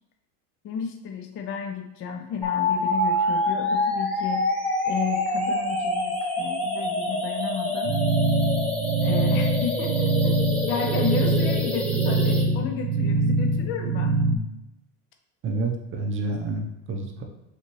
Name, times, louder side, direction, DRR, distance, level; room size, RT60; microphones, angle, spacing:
voice 1, 0.6-4.5 4.8-7.9 9.0-10.3 10.7-14.2, left 7 dB, 30° left, 4 dB, 0.4 m, -32 dB
sound 1, 2.4-12.4, left 1 dB, 5° left, 0.8 m, -27 dB
sound 2, 7.9-14.4, right 2 dB, 65° right, 0.7 m, -23 dB
voice 2, 10.4-10.7 11.1-11.3 15.4-17.2, right 2 dB, 30° right, 3 dB, 0.7 m, -30 dB
4.2 x 2.7 x 3.0 m, 0.91 s
hypercardioid pair, 95°, 42 cm